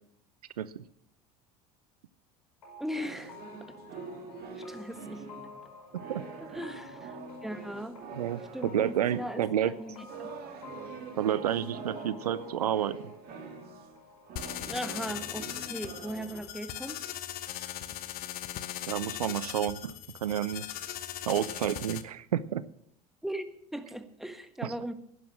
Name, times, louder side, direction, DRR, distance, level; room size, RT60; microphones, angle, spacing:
sound 1, 2.6-16.1, left 2 dB, 85° left, 5.6 m, -50 dB
voice 1, 2.8-3.7 4.5-5.2 6.4-8.0 8.5-10.3 14.6-17.0 23.2-24.9, equal, ahead, 10 dB, 1.5 m, -39 dB
sound 2, 3.0-14.0 14.2-16.4, right 4 dB, 50° right, 2.8 m, -45 dB
voice 2, 8.2-9.7 11.2-13.1 18.9-19.9 20.2-20.6 21.3-22.7 24.6-24.7, right 10 dB, 90° right, 18 dB, 0.6 m, -30 dB
sound 3, 14.4-22.0, left 12 dB, 50° left, 1.1 m, -39 dB
11.0 x 11.0 x 7.3 m, 0.70 s
hypercardioid pair, 80°, 19 cm